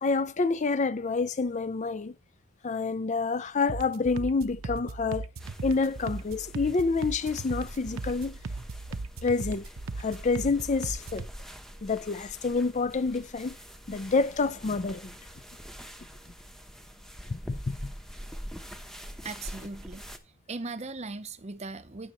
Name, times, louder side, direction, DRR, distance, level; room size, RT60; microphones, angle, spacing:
voice 1, 0.0-2.1 2.6-5.3 5.6-8.4 9.2-9.6 10.0-11.3 11.8-13.6 13.9-15.1 17.3-17.9, left 4 dB, 35° left, 0.4 m, -28 dB
sound 1, 3.7-11.3, right 3 dB, 80° right, 0.8 m, -38 dB
sound 2, 5.4-20.2, equal, ahead, 0.9 m, -45 dB
voice 2, 19.2-22.1, right 3 dB, 30° right, 0.7 m, -39 dB
17.5 x 6.4 x 3.0 m
head